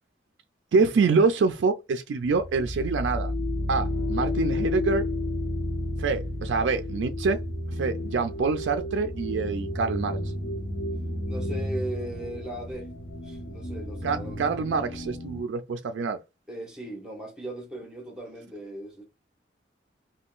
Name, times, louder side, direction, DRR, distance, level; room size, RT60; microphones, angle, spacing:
voice 1, 0.7-3.3 3.7-5.0 6.0-7.4 7.7-10.2 14.0-16.2, right 4 dB, 80° right, 0.3 m, -25 dB
sound 1, 2.3-15.4, left 1 dB, 85° left, 0.8 m, -32 dB
voice 2, 11.3-12.9 13.2-14.4 16.5-19.0, right 1 dB, 5° right, 1.0 m, -38 dB
3.6 x 2.2 x 2.4 m
head